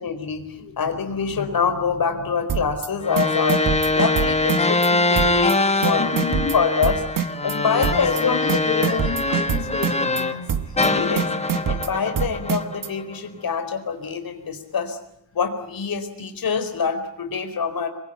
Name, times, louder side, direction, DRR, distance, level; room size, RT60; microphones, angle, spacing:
voice 1, 0.0-3.7 3.9-6.2 6.5-7.0 7.4-8.4 8.7-8.9 10.8-11.3 11.7-15.0 15.3-17.9, left 5 dB, 50° left, 7 dB, 4.4 m, -25 dB
sound 1, 2.5-2.9 3.2-4.9 5.2-5.5 5.8-7.5 7.8-8.2 8.5-10.2 10.5-10.9 11.2-12.9, right 8 dB, 45° right, 1.3 m, -25 dB
sound 2, 3.0-10.4 10.8-13.2, left 2 dB, 15° left, 1.4 m, -23 dB
voice 2, 6.0-6.6 7.7-10.9 13.3-13.4, left 5 dB, 30° left, 1 dB, 4.4 m, -31 dB
27.5 x 22.5 x 9.3 m, 0.77 s
wide cardioid pair, 175°, 44 cm